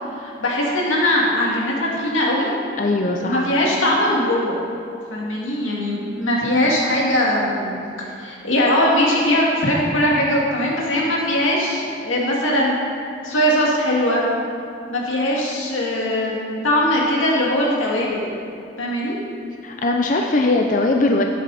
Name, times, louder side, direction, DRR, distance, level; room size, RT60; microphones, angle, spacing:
voice 1, 0.2-2.5 3.0-4.6 5.1-12.8 13.2-14.2 14.9-18.3 18.8-19.2, left 1 dB, 90° left, -3 dB, 2.4 m, -20 dB
voice 2, 2.8-3.5 19.6-21.2, left 2 dB, 40° left, 2 dB, 0.5 m, -20 dB
12.0 x 9.3 x 4.2 m, 2.6 s
head